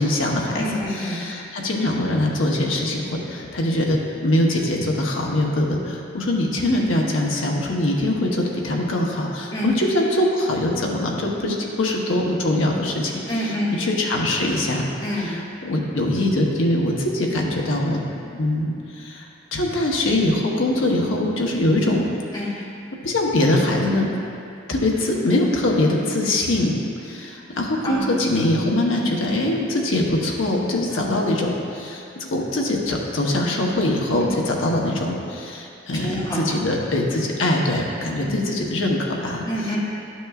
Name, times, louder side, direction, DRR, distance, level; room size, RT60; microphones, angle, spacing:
voice 1, 0.0-0.6 1.0-13.1 13.7-14.9 15.2-15.4 15.6-18.0 18.3-19.3 19.5-22.0 23.0-24.1 24.7-39.4, left 1 dB, 85° left, -1 dB, 1.0 m, -22 dB
voice 2, 0.6-1.2 9.5-9.7 13.3-13.8 15.0-15.4 22.3-22.5 27.8-28.0 30.9-31.1 34.2-34.3 35.9-36.4 38.2-38.3 39.4-39.8, left 1 dB, 20° left, -9 dB, 1.7 m, -27 dB
11.5 x 6.2 x 2.4 m, 2.6 s
head